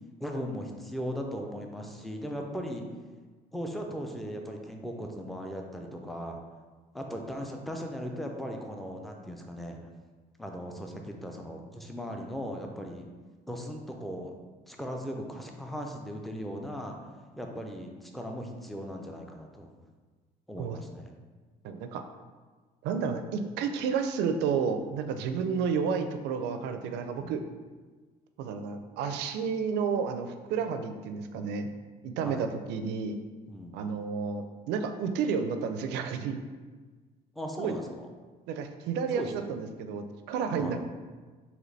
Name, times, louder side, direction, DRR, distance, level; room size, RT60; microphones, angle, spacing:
voice 1, 0.2-2.8 3.5-6.4 6.9-9.8 10.4-13.1 13.5-14.3 14.7-17.0 17.4-19.7 20.5-21.1 27.2-27.5 32.2-32.5 33.5-33.8 37.4-38.1 39.1-39.5 40.6-40.8, equal, ahead, 2 dB, 0.4 m, -38 dB
voice 2, 21.6-22.0 22.8-27.4 28.4-31.7 32.0-33.2 33.7-36.4 37.6-37.8 38.5-40.8, right 6 dB, 85° right, 7 dB, 0.4 m, -31 dB
3.9 x 2.9 x 3.2 m, 1.4 s
cardioid pair, 110°, 17 cm